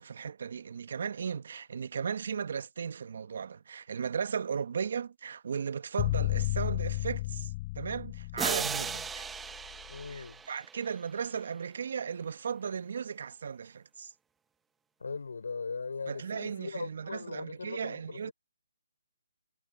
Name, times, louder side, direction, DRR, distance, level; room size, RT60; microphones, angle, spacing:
voice 1, 0.0-9.3 10.1-14.1 16.1-18.3, right 6 dB, 60° right, 1.5 m, -36 dB
sound 1, 6.0-10.1, left 19 dB, 30° left, 3.7 m, -33 dB
sound 2, 8.4-11.1, right 6 dB, 10° right, 1.3 m, -36 dB
voice 2, 9.9-10.4 15.0-18.3, left 4 dB, 75° left, 5.2 m, -39 dB
hypercardioid pair, 155°, 0 cm